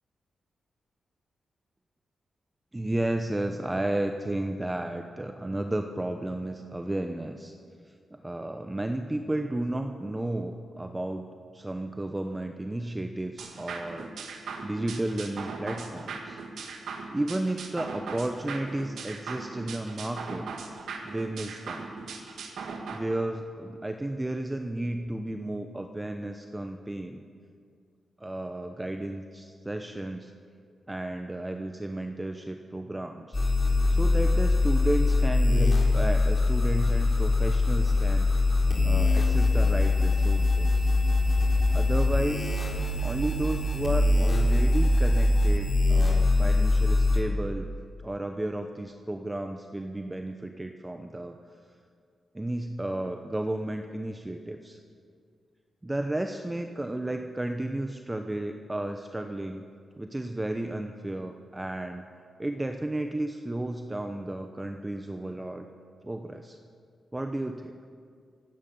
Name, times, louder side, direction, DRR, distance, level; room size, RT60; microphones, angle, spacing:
voice 1, 2.7-7.5 8.1-11.3 11.5-14.1 14.6-16.4 17.1-20.5 21.0-21.9 22.9-27.2 28.2-30.3 30.9-33.4 33.9-38.3 38.8-40.9 41.7-42.5 43.0-47.7 48.0-51.4 52.3-54.8 55.8-59.7 60.0-62.0 62.4-65.7 66.0-66.6 67.1-67.7, right 1 dB, 20° right, 6 dB, 0.8 m, -33 dB
sound 1, 13.4-23.0, right 4 dB, 80° right, 1.5 m, -39 dB
sound 2, 33.3-47.2, left 2 dB, 40° left, 3.8 m, -23 dB
25.5 x 8.9 x 5.5 m, 2.2 s
supercardioid pair, 50°, 0 cm